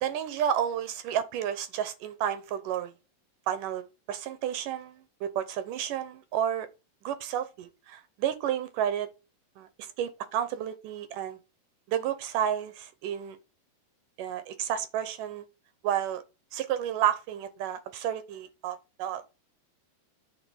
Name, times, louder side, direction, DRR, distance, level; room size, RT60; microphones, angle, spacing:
voice 1, 0.0-2.9 3.5-6.7 7.0-9.1 9.6-11.4 11.9-13.4 14.2-15.5 15.8-16.2 16.5-19.2, right 10 dB, 75° right, 2.1 m, -31 dB
9.4 x 4.7 x 6.3 m
omnidirectional pair, 4.5 m